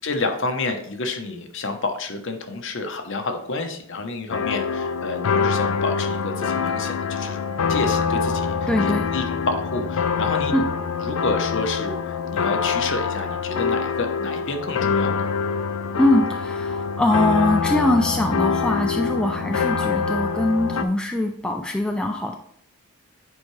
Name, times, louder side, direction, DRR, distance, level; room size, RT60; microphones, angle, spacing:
voice 1, 0.0-7.4 7.7-10.5 11.0-15.3, left 3 dB, 55° left, 5 dB, 0.9 m, -29 dB
sound 1, 4.3-20.8, left 5 dB, 75° left, 0.5 m, -25 dB
voice 2, 8.7-9.1 10.5-10.6 16.0-22.4, left 1 dB, 5° left, 2 dB, 0.3 m, -22 dB
9.4 x 4.6 x 3.2 m, 0.68 s
head